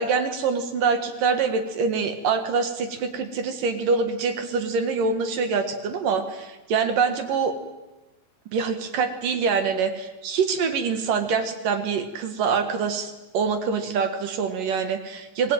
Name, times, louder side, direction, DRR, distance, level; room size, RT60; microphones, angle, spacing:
voice 1, 0.0-7.5 8.5-15.5, right 5 dB, 65° right, 7 dB, 3.3 m, -25 dB
24.5 x 18.5 x 9.1 m, 1.1 s
omnidirectional pair, 4.4 m